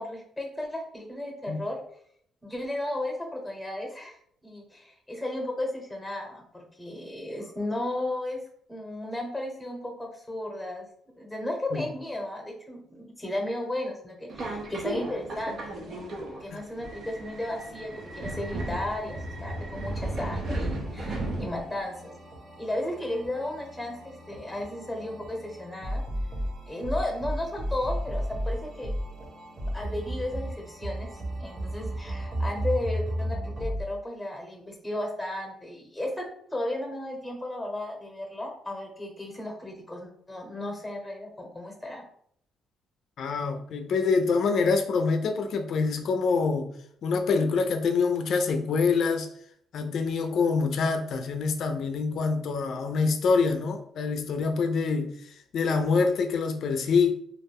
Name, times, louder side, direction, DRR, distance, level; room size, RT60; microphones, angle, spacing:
voice 1, 0.0-1.8 2.4-8.4 8.7-10.9 11.2-16.1 16.4-22.1 22.6-26.0 26.7-28.9 29.7-36.2 36.5-42.0, left 1 dB, 10° left, 1 dB, 0.9 m, -34 dB
Subway metro underground, 14.3-21.8, right 1 dB, 55° right, 0.6 m, -35 dB
sound 1, 17.8-33.8, equal, 35° right, 0.9 m, -35 dB
voice 2, 43.2-46.7 47.0-49.3 49.7-57.1, left 4 dB, 65° left, 6 dB, 0.4 m, -25 dB
2.4 x 2.0 x 3.3 m, 0.65 s
cardioid pair, 90°, 0 cm